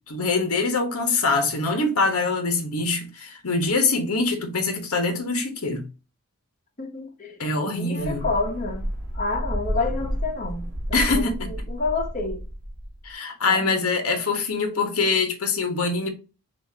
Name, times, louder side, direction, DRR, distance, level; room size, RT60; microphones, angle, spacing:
voice 1, 0.1-5.9 7.4-8.2 10.9-11.5 13.0-16.1, left 3 dB, 85° left, 1.2 m, -24 dB
voice 2, 6.8-7.4 7.7-8.9 9.1-12.4 13.4-13.8, left 3 dB, 35° left, 1.0 m, -29 dB
sound 1, 8.0-13.1, equal, 50° right, 1.6 m, -31 dB
6.2 x 2.8 x 2.8 m
head